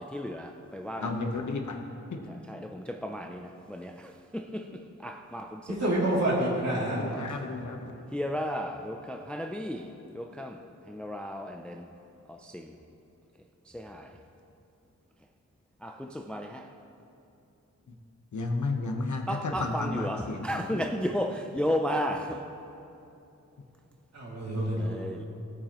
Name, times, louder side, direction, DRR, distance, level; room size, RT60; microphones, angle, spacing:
voice 1, 0.0-1.2 2.3-5.8 7.1-7.3 8.1-10.6 10.9-11.9 12.3-12.8 13.7-14.1 15.8-16.7 19.3-22.4 24.7-25.3, equal, 5° left, 0.4 m, -34 dB
voice 2, 1.0-1.8 2.1-2.2 6.9-7.9 17.9-18.0 18.3-20.8, left 3 dB, 75° left, 1.1 m, -33 dB
voice 3, 5.8-7.0 24.1-24.9, right 1 dB, 60° right, 2.8 m, -27 dB
17.5 x 8.7 x 3.0 m
wide cardioid pair, 115°, 30 cm